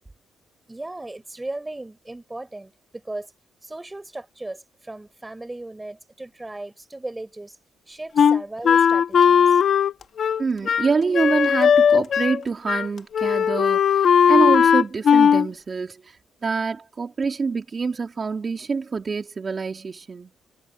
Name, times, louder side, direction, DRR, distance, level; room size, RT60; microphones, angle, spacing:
voice 1, 0.7-3.3 3.6-7.6 7.9-9.6, right 2 dB, 15° right, 4.1 m, -36 dB
Wind instrument woodwind instrument, 8.2-12.4 12.7-12.9 13.1-15.5, left 7 dB, 55° left, 1.3 m, -17 dB
voice 2, 10.4-16.2 16.4-20.3, right 4 dB, 35° right, 3.2 m, -26 dB
cardioid pair, 90°, 0 cm